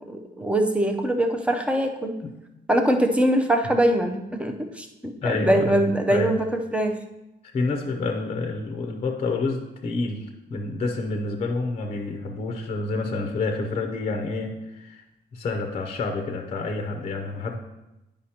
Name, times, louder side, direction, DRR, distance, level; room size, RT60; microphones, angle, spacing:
voice 1, 0.1-2.2 2.7-6.9, right 1 dB, 5° right, 4 dB, 0.5 m, -23 dB
voice 2, 5.2-6.3 7.5-15.0 15.3-17.5, left 3 dB, 35° left, 4 dB, 0.6 m, -28 dB
10.0 x 5.1 x 2.8 m, 0.95 s
cardioid pair, 160°, 18 cm